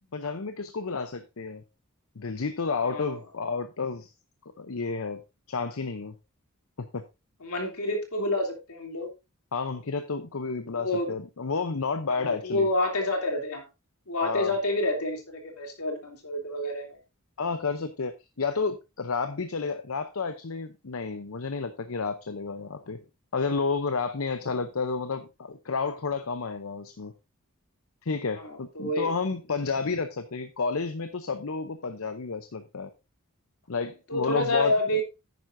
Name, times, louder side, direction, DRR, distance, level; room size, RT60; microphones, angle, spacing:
voice 1, 0.1-1.6 2.2-4.1 4.6-5.2 5.5-6.1 6.8-7.0 9.5-12.7 14.2-14.5 17.4-23.0 23.3-27.1 28.0-32.9 33.7-34.7, left 4 dB, 65° left, 10 dB, 0.7 m, -31 dB
voice 2, 2.8-3.2 7.4-9.1 10.7-11.2 12.1-13.7 14.1-17.0 24.5-24.6 28.4-29.1 34.1-35.0, left 1 dB, 85° left, 1 dB, 3.0 m, -28 dB
10.5 x 9.4 x 2.6 m, 0.26 s
head